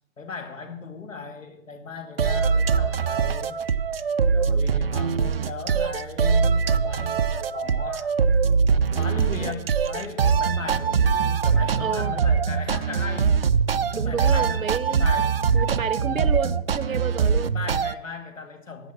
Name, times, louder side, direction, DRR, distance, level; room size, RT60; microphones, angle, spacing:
voice 1, 0.2-3.6 4.2-8.1 9.0-13.3 13.8-15.4 17.5-18.9, left 4 dB, 70° left, 2.1 m, -37 dB
sound 1, 2.2-17.9, right 6 dB, 45° right, 0.5 m, -22 dB
voice 2, 8.9-9.7 11.8-12.1 13.9-15.1 15.5-17.6, right 6 dB, 75° right, 0.8 m, -30 dB
11.0 x 7.6 x 7.2 m
figure-of-eight pair, 135°, 41 cm